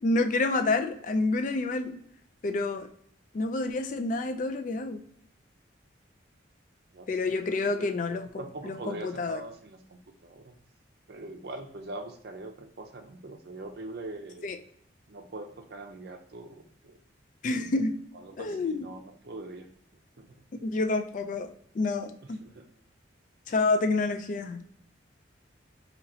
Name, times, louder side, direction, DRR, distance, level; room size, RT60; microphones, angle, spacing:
voice 1, 0.0-2.0 2.4-2.9 3.3-5.0 7.1-9.4 14.4-14.6 17.4-18.0 18.4-18.9 20.6-22.4 23.5-24.6, left 3 dB, 40° left, 8 dB, 0.3 m, -28 dB
voice 2, 7.8-10.5 11.1-14.5 15.1-17.0 18.1-19.7 20.2-20.4 22.2-22.7, right 2 dB, 55° right, 5 dB, 0.5 m, -43 dB
4.2 x 2.8 x 2.7 m, 0.67 s
head